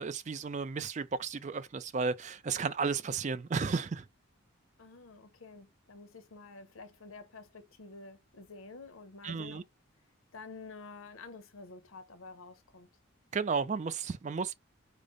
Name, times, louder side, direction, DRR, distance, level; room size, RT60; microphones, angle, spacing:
voice 1, 0.0-4.1 9.2-9.6 13.3-14.5, right 5 dB, 35° right, 0.4 m, -33 dB
voice 2, 4.8-9.7 10.3-12.9, left 3 dB, 90° left, 0.9 m, -49 dB
5.0 x 2.0 x 3.7 m
head